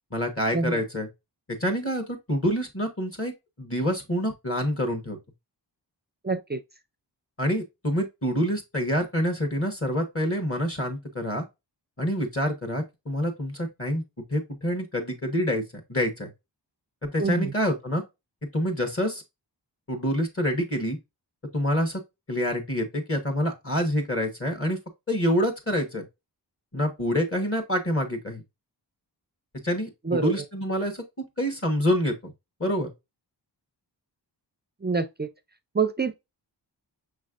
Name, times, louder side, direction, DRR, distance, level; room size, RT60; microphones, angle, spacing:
voice 1, 0.1-1.1 1.5-3.3 3.6-5.2 7.4-11.4 12.0-14.0 14.3-15.6 15.9-16.3 17.0-18.0 18.5-19.2 19.9-21.0 21.5-22.0 22.3-24.8 25.1-26.0 26.7-28.4 29.6-31.0 31.4-32.3 32.6-32.9, equal, 30° left, 1.3 m, -27 dB
voice 2, 6.2-6.6 17.2-17.5 30.1-30.3 34.8-35.3 35.7-36.1, right 4 dB, 25° right, 0.4 m, -26 dB
5.9 x 3.1 x 2.4 m
wide cardioid pair, 75°, 43 cm